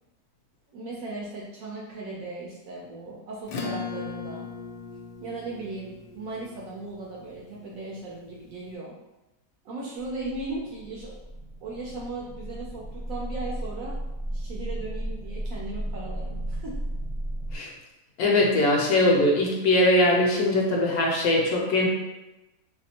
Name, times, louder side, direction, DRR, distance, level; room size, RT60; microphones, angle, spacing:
voice 1, 0.7-4.5 5.2-9.0 9.6-11.2 11.6-14.0 14.3-16.7, right 2 dB, 70° right, -4 dB, 0.8 m, -37 dB
Acoustic guitar / Strum, 3.5-8.4, left 5 dB, 90° left, 1.2 m, -39 dB
sound 1, 10.0-17.6, right 1 dB, 10° right, 0.4 m, -34 dB
voice 2, 18.2-21.9, left 1 dB, 70° left, -1 dB, 1.0 m, -21 dB
3.3 x 2.9 x 2.8 m, 1.0 s
omnidirectional pair, 1.8 m